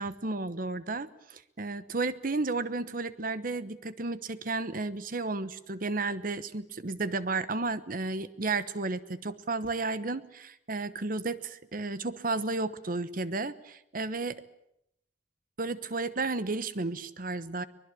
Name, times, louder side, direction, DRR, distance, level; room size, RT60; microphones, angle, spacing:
voice 1, 0.0-14.4 15.6-17.6, right 3 dB, 55° right, 14 dB, 1.1 m, -33 dB
24.0 x 20.5 x 8.5 m, 0.77 s
head